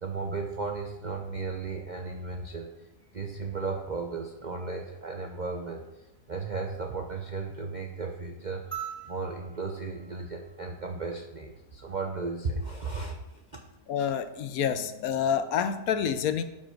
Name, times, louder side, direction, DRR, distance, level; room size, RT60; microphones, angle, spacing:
voice 1, 0.0-2.7 3.1-5.8 6.3-13.4, right 4 dB, 55° right, 2 dB, 0.5 m, -35 dB
sound 1, 8.7-11.3 12.9-13.0, right 9 dB, 10° right, 1.2 m, -43 dB
voice 2, 13.9-16.4, left 8 dB, 70° left, 10 dB, 1.0 m, -28 dB
11.5 x 4.5 x 4.5 m, 0.96 s
omnidirectional pair, 1.6 m